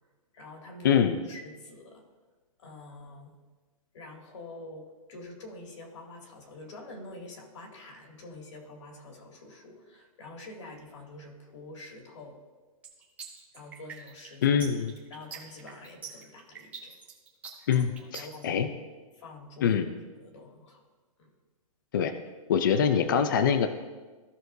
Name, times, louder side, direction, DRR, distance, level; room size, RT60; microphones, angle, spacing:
voice 1, 0.3-1.0 1.3-2.0 2.6-3.4 3.9-12.4 13.5-14.6 15.1-17.0 17.7-18.6 19.1-19.8 20.1-20.8 21.2-21.3, left 2 dB, 50° left, 1 dB, 2.3 m, -46 dB
voice 2, 0.8-1.2 14.4-14.9 17.7-18.7 19.6-19.9 21.9-22.1 22.5-23.7, left 7 dB, 35° left, 9 dB, 0.5 m, -24 dB
sound 1, 12.8-18.4, right 6 dB, 10° right, 1.1 m, -44 dB
16.0 x 6.2 x 2.6 m, 1.3 s
hypercardioid pair, 175°, 19 cm